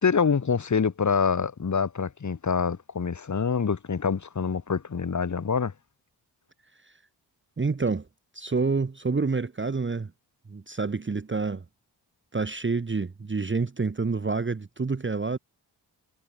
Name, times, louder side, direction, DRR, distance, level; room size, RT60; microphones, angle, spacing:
voice 1, 0.0-5.7, left 6 dB, 40° left, 1.3 m, -26 dB
voice 2, 7.6-8.1 8.3-10.1 10.5-11.6 12.3-15.4, right 4 dB, 25° right, 1.1 m, -28 dB
cardioid pair, 45°, 45 cm